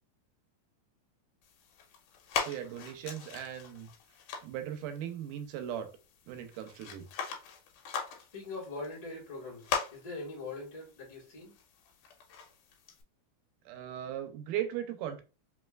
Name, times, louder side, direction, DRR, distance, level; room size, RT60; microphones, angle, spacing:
sound 1, 1.4-13.0, left 6 dB, 85° left, 2.3 m, -41 dB
voice 1, 2.3-3.9 4.4-5.9 6.3-7.1 13.7-15.2, right 10 dB, 90° right, 2.2 m, -38 dB
voice 2, 8.1-11.5, left 3 dB, 30° left, 0.7 m, -42 dB
4.9 x 3.1 x 2.4 m
omnidirectional pair, 3.6 m